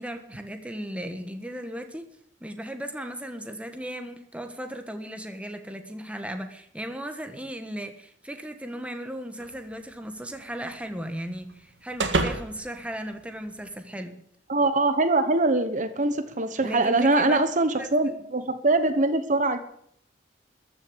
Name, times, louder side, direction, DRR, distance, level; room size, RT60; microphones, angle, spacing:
voice 1, 0.0-2.1 2.4-14.2 16.6-17.4 17.8-18.2, equal, 5° right, 6 dB, 1.4 m, -36 dB
sound 1, 9.4-13.8, right 3 dB, 80° right, 1.9 m, -34 dB
voice 2, 14.5-19.6, right 2 dB, 45° right, 9 dB, 1.1 m, -23 dB
14.5 x 7.0 x 9.9 m, 0.67 s
head